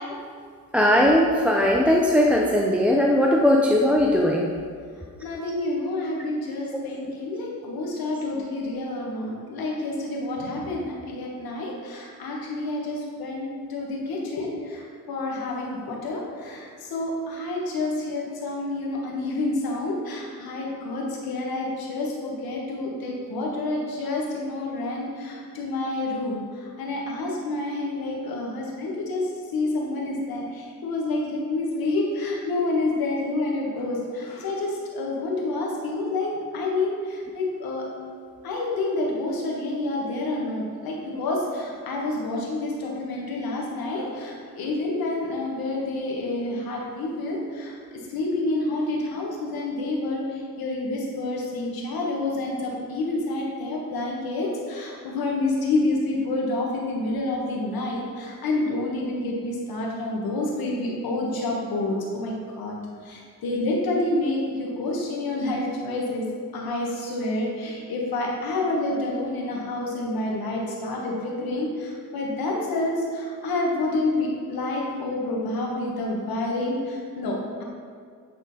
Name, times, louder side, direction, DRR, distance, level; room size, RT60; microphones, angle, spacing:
voice 1, 0.7-4.5, left 1 dB, 5° right, -1 dB, 0.4 m, -19 dB
voice 2, 5.2-37.9 38.4-47.7 48.1-62.7 63.0-66.2 66.5-77.6, left 2 dB, 75° left, -2 dB, 1.5 m, -28 dB
9.0 x 3.7 x 4.1 m, 2.1 s
cardioid pair, 85°, 36 cm